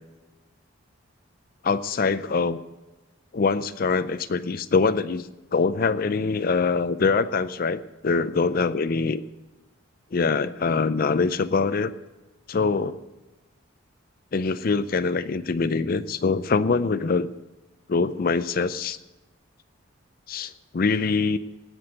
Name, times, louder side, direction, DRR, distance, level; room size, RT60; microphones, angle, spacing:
voice 1, 1.6-2.6 3.3-9.2 10.1-11.9 12.5-13.0 14.3-17.3 17.9-19.0 20.3-21.4, left 4 dB, 45° left, 13 dB, 0.4 m, -24 dB
18.0 x 6.1 x 7.8 m, 1.1 s
head